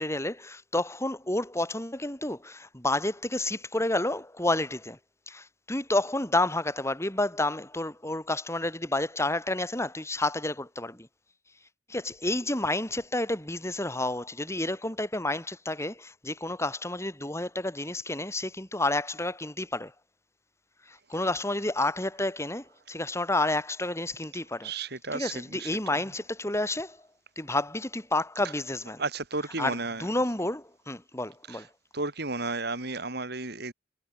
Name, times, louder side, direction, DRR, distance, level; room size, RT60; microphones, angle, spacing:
voice 1, 0.0-5.0 5.3-11.1 11.9-19.9 20.9-24.7 25.1-27.0 27.4-29.0 29.6-31.7, left 2 dB, 15° left, 5.5 m, -30 dB
voice 2, 24.6-25.7 29.0-30.0 31.5-31.6 31.9-33.7, right 3 dB, 60° right, 7.6 m, -33 dB
head